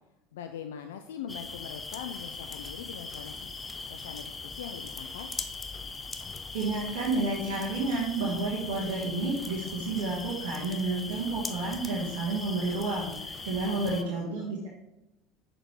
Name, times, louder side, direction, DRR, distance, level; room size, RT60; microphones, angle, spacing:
voice 1, 0.3-3.5 3.8-5.3 13.6-14.2, left 8 dB, 75° left, 7 dB, 0.4 m, -42 dB
sound 1, 1.3-14.0, left 4 dB, 25° left, 0.6 m, -40 dB
voice 2, 6.5-14.7, right 3 dB, 70° right, -3 dB, 1.2 m, -30 dB
6.2 x 5.0 x 3.2 m, 0.94 s
hypercardioid pair, 75°, 0 cm